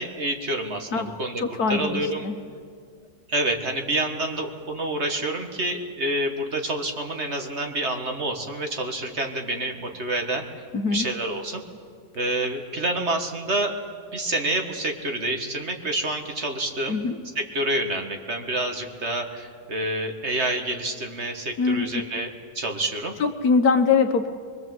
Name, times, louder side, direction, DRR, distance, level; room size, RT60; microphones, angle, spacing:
voice 1, 0.0-1.4 1.7-2.2 3.3-10.4 10.9-11.6 12.2-13.8 14.1-17.0 17.4-22.3 22.6-23.1, right 1 dB, 40° right, 3 dB, 1.9 m, -28 dB
voice 2, 1.4-2.4 10.7-11.0 16.9-17.2 21.6-21.9 23.2-24.3, left 5 dB, 65° left, 7 dB, 1.7 m, -22 dB
24.0 x 23.0 x 7.9 m, 2.2 s
omnidirectional pair, 1.8 m